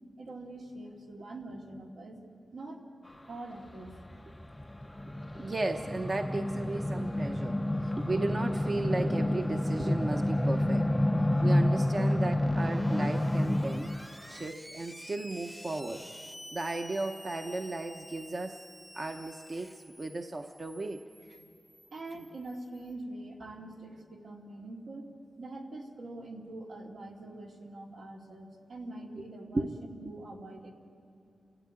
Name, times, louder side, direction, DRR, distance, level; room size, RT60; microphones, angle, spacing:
voice 1, 0.2-2.2 2.5-2.8 3.3-3.9 21.3-21.4 21.9-25.1 25.4-29.7 30.0-30.7, right 2 dB, 80° right, 0 dB, 2.6 m, -44 dB
sound 1, 3.7-14.1, left 1 dB, 10° left, 0.5 m, -29 dB
voice 2, 5.3-10.9 11.4-13.9 14.3-16.1 16.5-18.6 18.9-21.0 29.2-29.3 29.5-29.7, right 2 dB, 35° right, 5 dB, 0.9 m, -35 dB
Screech, 12.3-22.8, equal, 5° right, 0.9 m, -48 dB
29.5 x 13.0 x 9.0 m, 2.7 s
wide cardioid pair, 125°, 0 cm